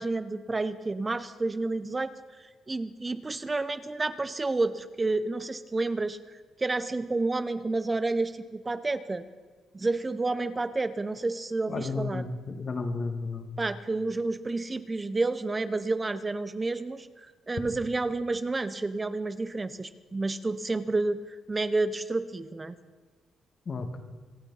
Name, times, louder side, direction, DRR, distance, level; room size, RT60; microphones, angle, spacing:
voice 1, 0.0-9.2 9.7-12.3 13.6-22.8, right 3 dB, 20° right, 12 dB, 0.7 m, -30 dB
voice 2, 11.7-13.5 23.7-24.0, left 3 dB, 45° left, 6 dB, 1.7 m, -33 dB
25.5 x 8.9 x 5.6 m, 1.4 s
cardioid pair, 90°, 0 cm